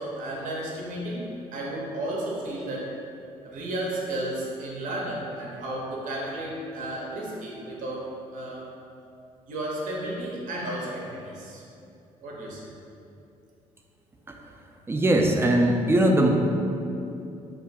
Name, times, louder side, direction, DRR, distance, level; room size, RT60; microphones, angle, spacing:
voice 1, 0.0-2.9 3.4-8.7 9.5-11.6 12.2-12.6, right 1 dB, 55° right, -3 dB, 0.6 m, -33 dB
voice 2, 14.9-16.3, right 1 dB, 15° right, 2 dB, 0.4 m, -20 dB
2.5 x 2.2 x 3.9 m, 2.6 s
hypercardioid pair, 45°, 16 cm